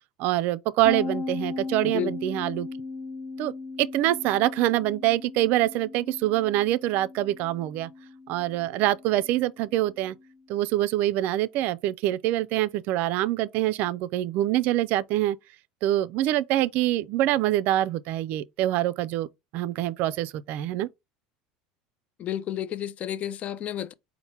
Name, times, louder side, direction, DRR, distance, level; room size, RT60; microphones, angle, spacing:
voice 1, 0.2-2.7 3.4-3.5 3.8-7.9 8.3-10.1 10.5-15.4 15.8-19.3 19.5-20.9, right 14 dB, 60° right, 0.3 m, -25 dB
sound 1, 0.8-10.3, left 3 dB, 25° left, 1.1 m, -38 dB
voice 2, 1.8-2.1 22.2-23.9, left 11 dB, 40° left, 0.4 m, -31 dB
4.3 x 2.1 x 4.2 m
supercardioid pair, 100°, 3 cm